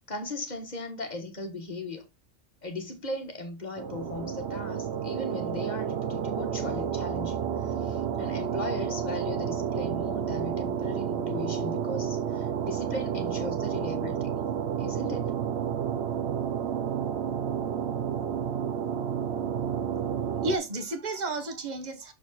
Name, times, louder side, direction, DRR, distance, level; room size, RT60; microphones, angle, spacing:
voice 1, 0.1-2.0 2.6-14.3 14.8-15.3, left 2 dB, 35° left, 1.5 m, -37 dB
sound 1, 3.8-20.6, right 8 dB, 60° right, 0.8 m, -30 dB
voice 2, 19.9-22.1, right 2 dB, 35° right, 1.3 m, -33 dB
6.9 x 4.5 x 4.1 m
omnidirectional pair, 1.3 m